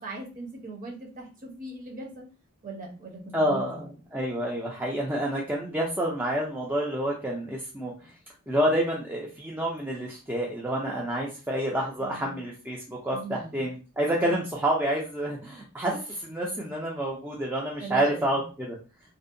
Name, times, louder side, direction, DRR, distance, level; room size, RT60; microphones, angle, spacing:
voice 1, 0.0-2.2 2.6-3.8 12.0-12.4 13.1-13.6 14.2-14.4 17.8-18.4, right 2 dB, 40° right, 0 dB, 0.7 m, -39 dB
voice 2, 3.3-7.9 8.5-18.8, right 1 dB, 10° right, -3 dB, 0.4 m, -28 dB
2.6 x 2.1 x 2.5 m, 0.33 s
head